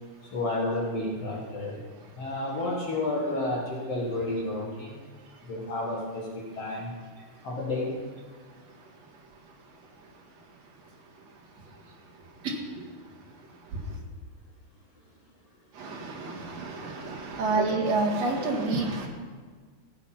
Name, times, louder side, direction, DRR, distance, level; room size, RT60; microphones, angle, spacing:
voice 1, 0.3-1.8 2.2-5.0 5.4-6.9 7.4-7.9, left 2 dB, 50° left, -3 dB, 2.3 m, -31 dB
voice 2, 8.5-14.0 15.7-19.1, right 3 dB, 50° right, -1 dB, 2.7 m, -32 dB
15.5 x 8.9 x 5.8 m, 1.5 s
omnidirectional pair, 4.5 m